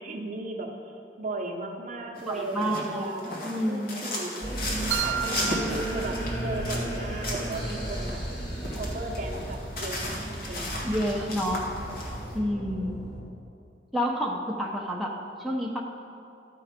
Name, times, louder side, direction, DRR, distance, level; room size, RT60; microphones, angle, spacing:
voice 1, 0.0-3.4 3.6-4.6 5.0-8.2 8.8-11.1, right 2 dB, 45° right, 2 dB, 0.8 m, -36 dB
sound 1, 2.2-12.3, left 1 dB, 55° left, 1.5 m, -36 dB
voice 2, 2.3-3.1 3.4-4.0 10.8-11.6 12.3-12.9 13.9-15.8, equal, ahead, -1 dB, 0.7 m, -29 dB
sound 2, 4.4-13.2, right 1 dB, 30° left, 2.2 m, -34 dB
sound 3, 4.9-6.9, right 10 dB, 70° right, 0.4 m, -33 dB
13.0 x 4.6 x 5.0 m, 2.6 s
head